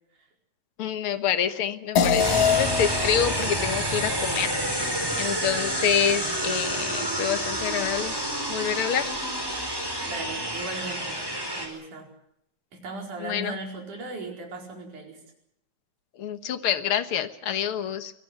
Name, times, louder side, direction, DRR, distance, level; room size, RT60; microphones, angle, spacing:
voice 1, 0.8-8.1 8.5-9.1 13.2-13.5 16.2-18.1, left 8 dB, 60° left, 10 dB, 1.6 m, -27 dB
sound 1, 2.0-6.7, left 7 dB, 85° left, 3.7 m, -28 dB
sound 2, 2.2-11.7, right 1 dB, 5° right, 4.3 m, -29 dB
voice 2, 10.1-12.1 12.7-15.2, right 2 dB, 65° right, 2 dB, 6.1 m, -37 dB
24.0 x 17.5 x 8.0 m, 0.77 s
omnidirectional pair, 3.8 m